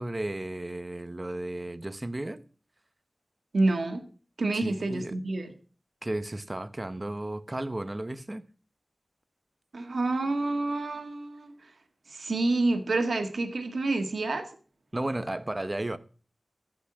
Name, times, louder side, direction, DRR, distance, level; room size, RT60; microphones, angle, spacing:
voice 1, 0.0-2.4 4.5-5.2 6.0-8.4 14.9-16.0, right 1 dB, 30° right, 0.9 m, -34 dB
voice 2, 3.5-4.0 4.4-5.5 9.7-11.7 12.1-14.5, right 2 dB, 85° right, 1.9 m, -28 dB
15.0 x 6.1 x 6.2 m
wide cardioid pair, 75°, 0 cm